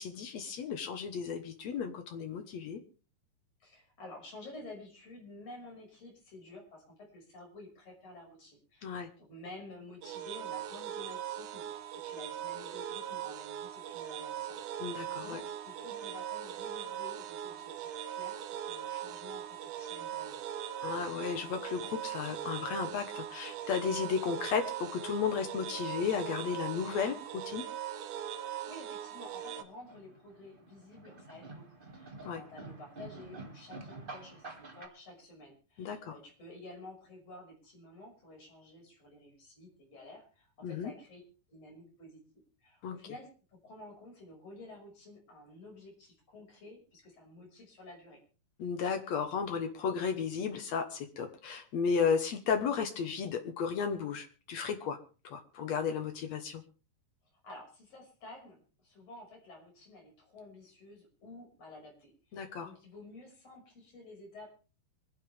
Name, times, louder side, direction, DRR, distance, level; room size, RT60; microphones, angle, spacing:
voice 1, 0.0-2.8 8.8-9.1 14.8-15.4 20.8-27.2 27.5-27.6 32.2-32.4 35.8-36.2 40.6-40.9 42.8-43.0 48.6-55.0 55.2-56.6 62.3-62.7, left 6 dB, 65° left, 7 dB, 1.7 m, -34 dB
voice 2, 3.6-20.4 28.3-31.6 31.9-41.2 41.5-42.2 42.6-48.2 57.4-64.5, left 2 dB, 35° left, -1 dB, 6.5 m, -51 dB
sound 1, 10.0-29.6, right 10 dB, 75° right, 1.9 m, -40 dB
sound 2, 29.6-34.9, right 3 dB, 30° right, 0.9 m, -48 dB
25.5 x 10.5 x 3.4 m, 0.36 s
omnidirectional pair, 4.7 m